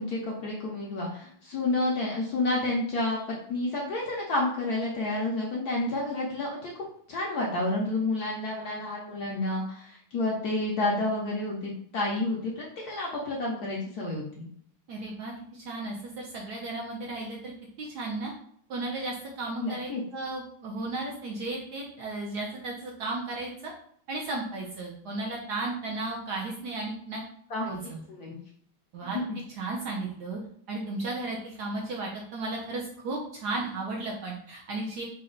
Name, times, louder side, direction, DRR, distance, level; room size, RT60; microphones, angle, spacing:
voice 1, 0.0-14.5 19.6-20.0 27.5-28.4, left 2 dB, 65° left, -3 dB, 0.9 m, -30 dB
voice 2, 14.9-17.5 17.8-18.3 18.7-23.7 24.1-27.2 27.6-28.0 28.9-29.2 29.6-30.4 30.7-35.0, right 2 dB, 70° right, -2 dB, 1.0 m, -34 dB
4.1 x 2.2 x 3.8 m, 0.63 s
omnidirectional pair, 2.2 m